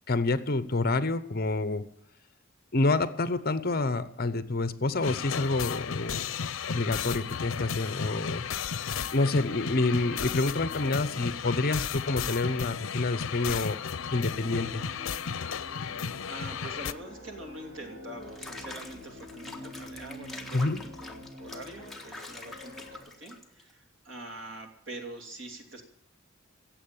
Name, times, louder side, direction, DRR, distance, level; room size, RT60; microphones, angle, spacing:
voice 1, 0.1-1.8 2.7-6.3 6.7-8.4 9.1-13.8 14.1-14.8 20.5-20.8, left 2 dB, 50° left, 13 dB, 0.8 m, -28 dB
sound 1, 5.0-16.9, left 7 dB, 85° left, 0.6 m, -34 dB
sound 2, 14.2-23.0, left 1 dB, 35° right, 5.6 m, -47 dB
voice 2, 15.9-25.8, right 1 dB, 70° right, 4 dB, 2.9 m, -44 dB
Water / Bathtub (filling or washing), 18.2-23.7, left 2 dB, ahead, 1.5 m, -45 dB
16.5 x 7.7 x 8.8 m, 0.68 s
head